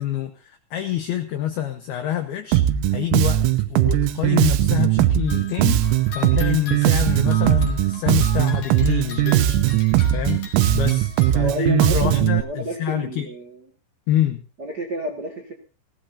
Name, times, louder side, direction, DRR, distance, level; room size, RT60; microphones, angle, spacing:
voice 1, 0.0-2.6 2.9-9.6 10.1-13.3 14.1-14.4, left 11 dB, 85° left, 6 dB, 2.2 m, -26 dB
Bass guitar, 2.5-12.4, right 13 dB, 90° right, 3.5 m, -19 dB
sound 1, 5.3-11.3, left 5 dB, 45° left, 3.7 m, -38 dB
voice 2, 11.4-13.6 14.6-15.5, right 2 dB, 60° right, 1 dB, 1.0 m, -30 dB
18.5 x 17.5 x 2.8 m, 0.34 s
omnidirectional pair, 5.9 m